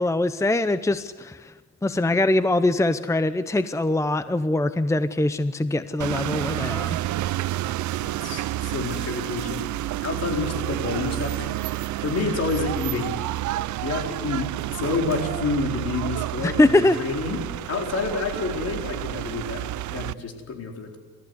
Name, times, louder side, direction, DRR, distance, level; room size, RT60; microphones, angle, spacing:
voice 1, 0.0-1.5 1.8-7.0 16.4-17.0, left 2 dB, 10° left, 12 dB, 0.8 m, -22 dB
sound 1, 6.0-20.1, right 15 dB, 75° right, 0.7 m, -29 dB
voice 2, 8.0-9.7 10.0-13.2 13.8-17.4 17.7-21.0, left 4 dB, 55° left, 2 dB, 4.6 m, -29 dB
28.5 x 14.5 x 8.1 m, 1.4 s
cardioid pair, 90°, 30 cm